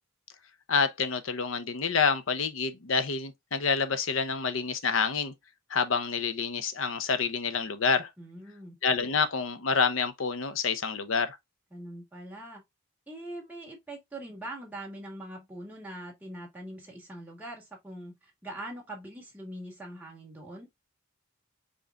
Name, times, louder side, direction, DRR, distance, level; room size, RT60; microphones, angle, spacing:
voice 1, 0.7-5.3 5.7-8.1 8.8-11.4, left 5 dB, 70° left, 0.7 m, -28 dB
voice 2, 8.2-8.8 11.7-12.6 13.1-20.7, right 1 dB, 10° right, 2.0 m, -42 dB
5.1 x 3.8 x 2.4 m
head